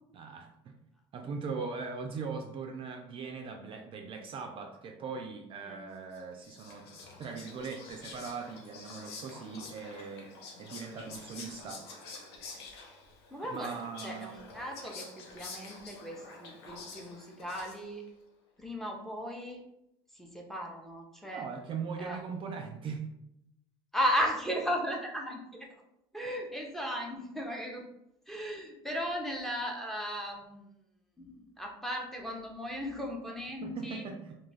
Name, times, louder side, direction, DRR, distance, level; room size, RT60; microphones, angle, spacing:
voice 1, 0.1-0.7 1.1-6.9 7.2-10.3 10.6-11.8 13.5-14.3 21.3-23.1 33.6-34.4, right 5 dB, 40° right, 4 dB, 0.4 m, -40 dB
Whispering, 6.1-18.1, left 3 dB, 85° left, 0.7 m, -48 dB
voice 2, 13.3-13.8 14.0-15.1 15.3-18.0 18.6-19.6 20.1-21.4 22.0-22.2 23.9-25.7 26.1-27.8 28.3-30.6 31.2-34.1, equal, ahead, -1 dB, 0.6 m, -36 dB
2.3 x 2.3 x 3.2 m, 0.81 s
hypercardioid pair, 85°, 13 cm